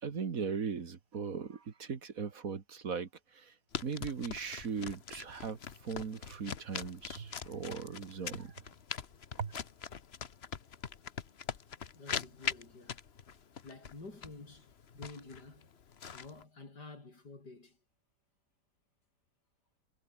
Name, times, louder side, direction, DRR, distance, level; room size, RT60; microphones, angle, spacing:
voice 1, 0.0-3.5 3.8-8.5 9.4-9.5, right 6 dB, 55° right, 2.0 m, -39 dB
sound 1, 3.7-16.4, left 7 dB, 40° left, 1.2 m, -42 dB
voice 2, 12.0-13.1 13.6-15.7 16.1-17.8, left 3 dB, 70° left, 5.3 m, -50 dB
omnidirectional pair, 1.9 m